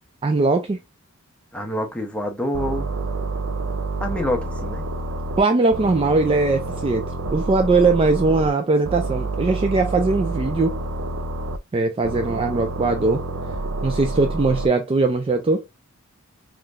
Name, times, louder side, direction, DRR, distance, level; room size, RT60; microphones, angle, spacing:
voice 1, 0.2-0.8 5.4-10.8 11.7-13.2 13.8-15.6, right 3 dB, 25° right, 0.3 m, -20 dB
voice 2, 1.5-2.9 4.0-4.8 12.3-12.5, left 1 dB, 5° left, 0.8 m, -27 dB
sound 1, 2.5-5.4 5.7-8.5 8.8-11.6 12.0-14.7, right 2 dB, 85° right, 0.5 m, -28 dB
3.9 x 3.1 x 2.4 m
head